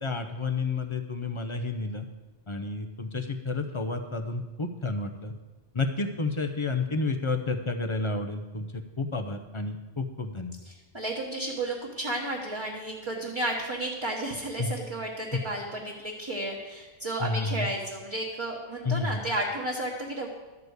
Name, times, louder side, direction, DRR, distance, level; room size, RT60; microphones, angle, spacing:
voice 1, 0.0-2.1 2.5-5.3 5.7-10.6 14.6-14.8 15.3-15.4 17.2-17.7 18.8-19.2, left 3 dB, 30° left, 6 dB, 0.6 m, -30 dB
voice 2, 10.7-20.3, right 1 dB, 25° right, -4 dB, 1.2 m, -32 dB
12.0 x 4.9 x 8.0 m, 1.2 s
omnidirectional pair, 1.3 m